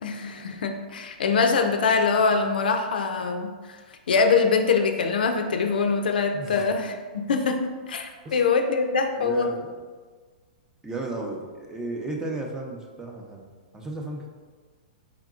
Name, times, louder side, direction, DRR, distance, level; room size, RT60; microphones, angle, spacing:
voice 1, 0.0-3.5 4.1-6.9 7.3-7.6 7.9-9.5, left 5 dB, 75° left, 5 dB, 0.4 m, -23 dB
voice 2, 6.3-6.7 8.2-8.5 9.2-9.7 10.8-13.5 13.7-14.3, right 2 dB, 10° right, 0 dB, 0.6 m, -34 dB
4.7 x 3.6 x 2.4 m, 1.5 s
hypercardioid pair, 120°, 5 cm